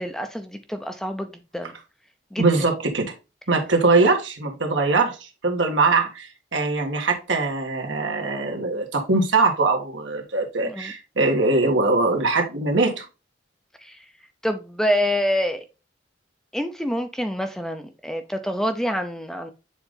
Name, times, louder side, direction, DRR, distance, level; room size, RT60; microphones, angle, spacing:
voice 1, 0.0-1.7 2.3-2.7 10.6-10.9 13.8-14.0 14.4-15.6 16.5-19.5, equal, ahead, 0.5 m, -27 dB
voice 2, 2.4-3.1 3.5-13.1, right 3 dB, 80° right, 1.7 m, -22 dB
7.2 x 3.8 x 3.7 m
head